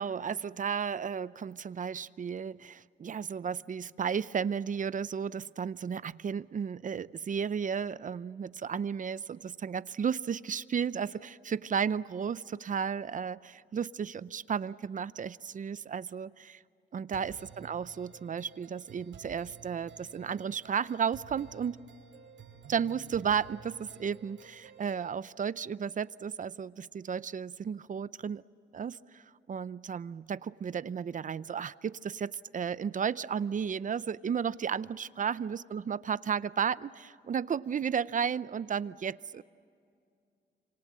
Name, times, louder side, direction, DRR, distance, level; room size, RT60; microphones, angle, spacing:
voice 1, 0.0-16.6 16.9-21.8 22.7-28.4 28.7-39.4, right 7 dB, 45° right, 17 dB, 0.6 m, -33 dB
sound 1, 17.1-25.1, right 5 dB, 85° right, 5.9 m, -53 dB
28.5 x 26.5 x 7.6 m, 2.3 s
cardioid pair, 100°, 19 cm